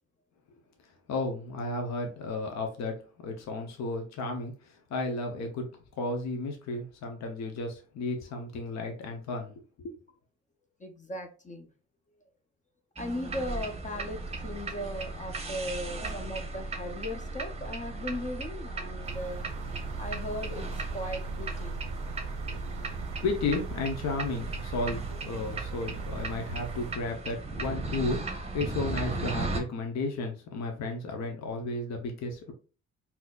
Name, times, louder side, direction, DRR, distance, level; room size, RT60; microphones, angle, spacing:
voice 1, 1.1-2.9 3.2-5.7 5.9-9.9 22.4-32.5, left 3 dB, 65° left, 3 dB, 0.8 m, -33 dB
voice 2, 10.8-11.7 13.0-19.4 20.0-20.7 20.9-21.8, left 1 dB, 25° left, 6 dB, 0.5 m, -37 dB
sound 1, 13.0-29.6, right 3 dB, 20° right, 0.8 m, -36 dB
sound 2, 19.0-27.0, right 7 dB, 80° right, 0.5 m, -42 dB
3.9 x 2.8 x 2.3 m, 0.36 s
cardioid pair, 90°, 30 cm